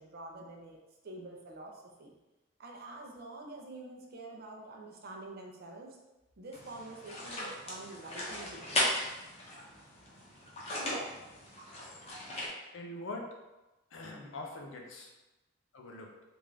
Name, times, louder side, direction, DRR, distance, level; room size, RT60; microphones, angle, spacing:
voice 1, 0.0-2.1 2.6-6.0 6.4-8.9, right 2 dB, 50° right, 0 dB, 0.6 m, -47 dB
sound 1, 6.5-12.5, left 1 dB, 30° left, 0.8 m, -37 dB
voice 2, 12.7-13.3 13.9-15.1 15.7-16.1, left 2 dB, 70° left, 1 dB, 0.6 m, -43 dB
3.5 x 2.5 x 3.2 m, 1.0 s
head